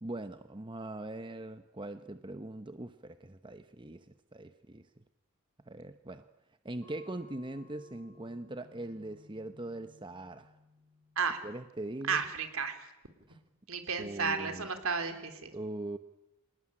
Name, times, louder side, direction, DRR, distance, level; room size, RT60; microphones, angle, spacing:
voice 1, 0.0-4.9 5.7-6.3 6.6-10.5 11.4-12.3 13.3-13.4 14.0-14.7 15.5-16.0, right 1 dB, 20° right, 9 dB, 0.9 m, -41 dB
sound 1, 6.8-11.9, left 3 dB, 15° left, 7.3 m, -60 dB
voice 2, 12.1-12.8 13.7-15.5, right 5 dB, 65° right, 8 dB, 3.5 m, -33 dB
27.0 x 19.0 x 9.9 m, 0.97 s
head